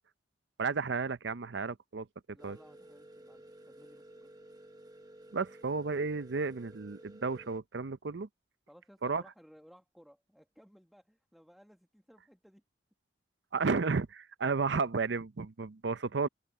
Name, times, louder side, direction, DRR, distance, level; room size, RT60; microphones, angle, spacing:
voice 1, 0.6-2.1 2.4-2.6 5.3-8.3 9.0-9.2 13.5-16.3, right 4 dB, 65° right, 0.6 m, -32 dB
voice 2, 2.3-4.3 8.7-12.6, equal, ahead, 1.5 m, -59 dB
sound 1, 2.4-7.6, right 1 dB, 20° right, 1.1 m, -54 dB
head